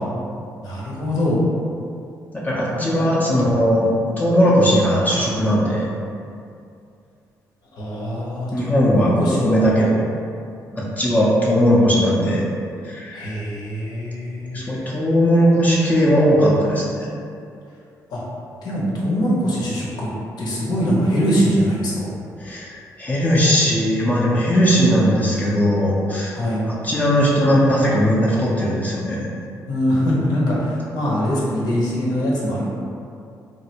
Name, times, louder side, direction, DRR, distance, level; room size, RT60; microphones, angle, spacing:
voice 1, 0.6-1.4 2.8-3.5 7.7-9.7 13.1-14.9 18.1-18.2 18.6-20.1 20.4-22.1 26.3-26.7 29.7-32.7, equal, 70° left, -5 dB, 0.9 m, -23 dB
voice 2, 2.3-3.9 4.2-5.9 8.5-10.0 10.7-12.4 12.8-13.3 14.5-17.1 22.4-26.4 26.6-29.2, equal, 20° left, -6 dB, 0.5 m, -18 dB
3.1 x 2.5 x 2.8 m, 2.5 s
cardioid pair, 100°, 7 cm